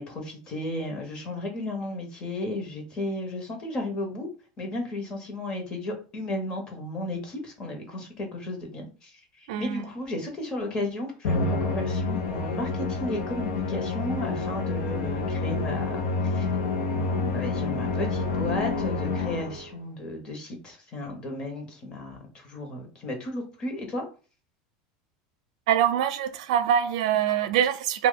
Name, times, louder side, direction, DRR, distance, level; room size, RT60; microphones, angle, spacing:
voice 1, 0.0-4.3 4.6-16.5 16.9-24.0, left 1 dB, 25° left, 0.9 m, -34 dB
voice 2, 9.5-9.8 25.7-28.1, right 9 dB, 75° right, 0.5 m, -24 dB
Musical instrument, 11.2-19.8, left 3 dB, 70° left, 0.7 m, -28 dB
2.8 x 2.3 x 3.8 m
supercardioid pair, 160°, 3 cm